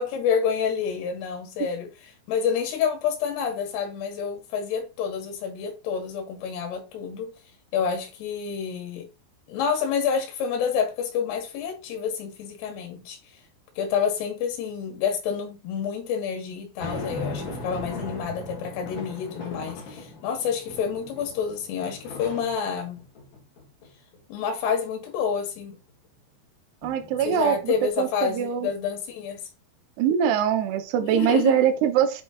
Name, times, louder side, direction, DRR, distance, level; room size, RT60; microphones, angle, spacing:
voice 1, 0.0-7.3 7.7-9.1 9.5-13.2 13.8-23.0 24.3-25.8 27.2-29.4 31.0-31.6, left 7 dB, 65° left, 3.5 m, -28 dB
sound 1, 16.8-22.3 22.8-22.9 26.8-27.9, left 2 dB, 30° left, 2.0 m, -38 dB
sound 2, 19.4-20.4 21.8-24.2 25.2-26.2, left 3 dB, 50° left, 2.5 m, -42 dB
voice 2, 26.8-28.7 30.0-32.2, right 9 dB, 75° right, 2.7 m, -23 dB
8.5 x 4.3 x 2.9 m
omnidirectional pair, 5.4 m